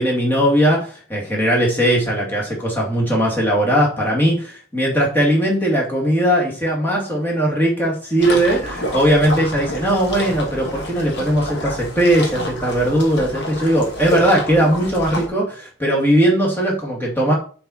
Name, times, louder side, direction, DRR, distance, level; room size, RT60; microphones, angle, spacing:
voice 1, 0.0-17.3, right 1 dB, 10° left, -3 dB, 2.2 m, -18 dB
sound 1, 8.2-15.3, equal, 55° left, 1.7 m, -29 dB
7.5 x 4.2 x 4.3 m, 0.41 s
head